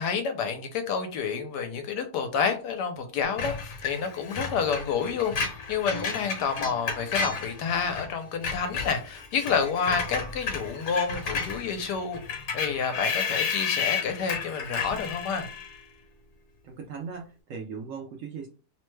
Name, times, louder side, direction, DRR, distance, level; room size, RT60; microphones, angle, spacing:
voice 1, 0.0-12.2 12.5-15.5, left 6 dB, 85° left, 1.2 m, -29 dB
Screech, 3.4-8.1 8.3-15.8, left 5 dB, 65° left, 1.3 m, -32 dB
voice 2, 16.6-18.5, right 6 dB, 70° right, 0.8 m, -38 dB
3.0 x 2.2 x 3.1 m
omnidirectional pair, 1.8 m